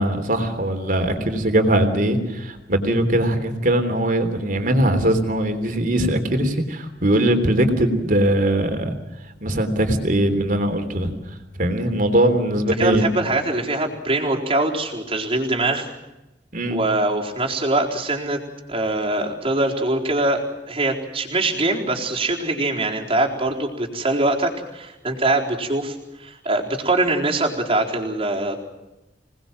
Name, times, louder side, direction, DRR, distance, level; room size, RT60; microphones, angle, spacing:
voice 1, 0.0-8.9 9.4-11.1 11.6-13.1 16.5-16.8, right 1 dB, 50° right, 6 dB, 3.4 m, -20 dB
voice 2, 12.8-15.9 16.7-18.4 18.7-28.6, right 2 dB, 35° right, 0 dB, 4.2 m, -23 dB
26.5 x 19.5 x 7.6 m, 0.99 s
head